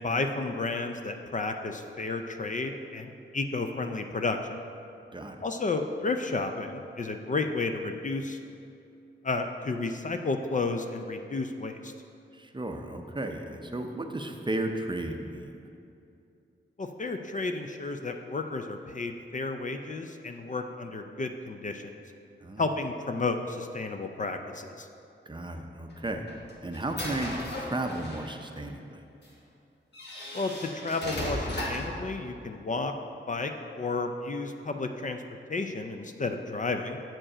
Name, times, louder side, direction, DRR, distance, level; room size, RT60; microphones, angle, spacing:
voice 1, 0.0-4.4 5.4-8.4 9.2-11.9 16.8-22.0 22.6-24.9 30.3-32.9 33.3-35.2 35.5-37.0, left 3 dB, 40° left, 6 dB, 0.4 m, -32 dB
voice 2, 12.3-15.6 22.4-22.7 25.3-26.2 26.6-29.0, right 1 dB, 25° right, 4 dB, 0.6 m, -34 dB
sound 1, 25.9-28.4 29.2-29.3 29.9-32.0, left 1 dB, 55° left, 1.5 m, -36 dB
7.4 x 5.0 x 4.9 m, 2.6 s
wide cardioid pair, 90°, 21 cm